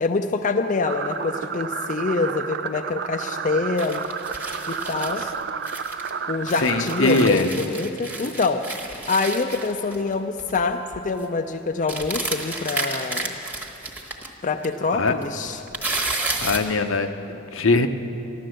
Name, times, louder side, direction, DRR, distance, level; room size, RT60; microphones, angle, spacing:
voice 1, 0.0-4.0 4.7-5.2 6.3-8.6 9.1-13.3 14.4-15.6, left 3 dB, 40° left, 5 dB, 0.4 m, -25 dB
sound 1, 0.8-7.3, right 6 dB, 50° right, 0.5 m, -31 dB
sound 2, 3.8-6.1 6.5-10.1 10.4-10.6 10.9-11.2 11.9-14.3 14.6-14.7 15.1-16.7, right 2 dB, 10° right, 1.1 m, -31 dB
voice 2, 6.6-7.5 15.0-15.2 16.4-17.9, left 3 dB, 70° left, 8 dB, 0.7 m, -21 dB
14.5 x 11.5 x 7.7 m, 2.9 s
head